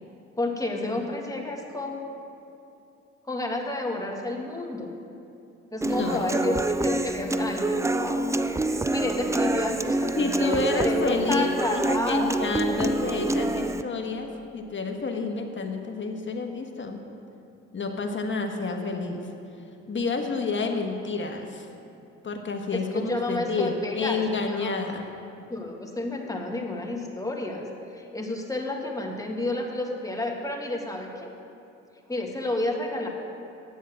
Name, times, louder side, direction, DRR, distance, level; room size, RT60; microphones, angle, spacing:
voice 1, 0.4-2.0 3.3-4.9 5.7-8.4 8.7-12.4 12.6-13.2 22.7-24.7 25.5-27.7 27.9-31.3 32.1-33.1, left 2 dB, 10° left, 0 dB, 1.8 m, -31 dB
voice 2, 5.8-6.3 10.1-11.5 11.7-17.0 17.7-19.2 19.9-21.7 22.2-25.1, left 3 dB, 40° left, 3 dB, 1.4 m, -29 dB
Human voice / Acoustic guitar, 5.8-13.8, right 2 dB, 10° right, 0.4 m, -26 dB
9.6 x 7.2 x 7.6 m, 2.7 s
supercardioid pair, 70°, 30 cm